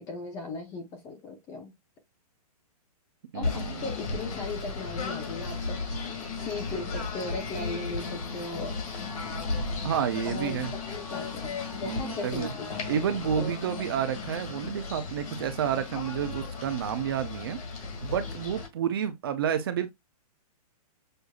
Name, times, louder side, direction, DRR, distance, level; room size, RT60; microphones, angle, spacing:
voice 1, 0.0-1.7 3.3-5.9 6.3-8.8 10.2-13.8, left 3 dB, 15° left, 0.8 m, -38 dB
voice 2, 3.3-3.7 9.8-10.7 11.9-12.5 12.9-17.6 18.0-19.9, right 9 dB, 35° right, 0.7 m, -30 dB
Singing / Bird, 3.4-18.7, left 4 dB, 60° left, 2.2 m, -35 dB
6.5 x 2.7 x 2.4 m
hypercardioid pair, 175°, 20 cm